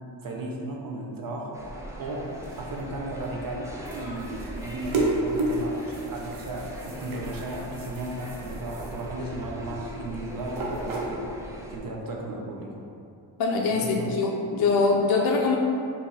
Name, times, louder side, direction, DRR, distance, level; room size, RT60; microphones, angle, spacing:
voice 1, 0.2-1.6 2.0-2.3 2.6-11.3 11.7-12.8 13.8-14.1, right 1 dB, 45° right, -1 dB, 0.7 m, -35 dB
sound 1, 1.5-11.8, equal, 5° right, 0.5 m, -40 dB
sound 2, 2.1-11.6, right 2 dB, 90° right, 0.6 m, -33 dB
voice 2, 13.4-15.6, left 4 dB, 55° left, 0 dB, 0.5 m, -23 dB
2.8 x 2.7 x 3.7 m, 2.6 s
cardioid pair, 55°, 46 cm